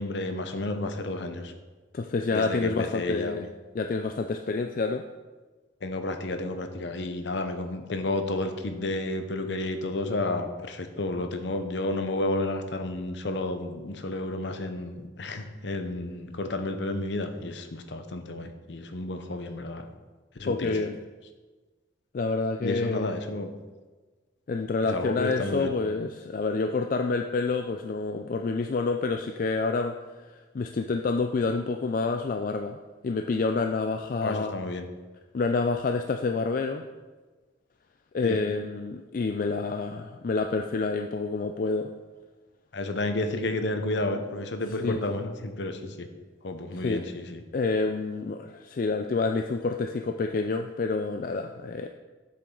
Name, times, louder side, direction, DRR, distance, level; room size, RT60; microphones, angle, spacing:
voice 1, 0.0-1.5 2.3-3.4 5.8-19.9 20.3-20.8 22.6-23.5 24.8-25.7 34.2-34.9 38.2-38.4 42.7-46.1 46.4-47.4, left 2 dB, 65° left, 7 dB, 0.7 m, -31 dB
voice 2, 1.9-3.5 3.7-5.0 20.4-21.0 22.1-23.1 24.5-30.0 30.3-32.8 33.0-34.5 35.3-36.8 38.1-41.9 44.8-45.0 46.8-47.0 47.5-51.9, left 3 dB, 45° left, 5 dB, 0.3 m, -28 dB
7.6 x 6.9 x 3.8 m, 1.3 s
head